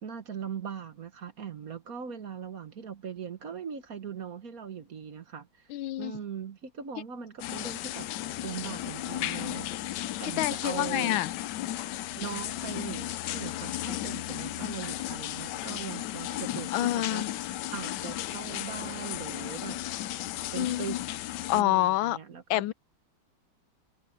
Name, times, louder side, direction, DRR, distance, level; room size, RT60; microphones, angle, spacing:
voice 1, 0.0-5.7 6.0-8.1 8.4-9.7 10.2-11.2 12.2-17.2 17.7-19.8 20.5-21.0 21.5-22.6, right 7 dB, 50° right, 1.6 m, -40 dB
voice 2, 5.7-6.1 10.4-11.3 16.7-17.3 20.6-21.0 21.5-22.2 22.5-22.7, left 15 dB, 90° left, 1.4 m, -27 dB
sound 1, 7.4-21.6, left 14 dB, 70° left, 1.1 m, -35 dB
omnidirectional pair, 2.1 m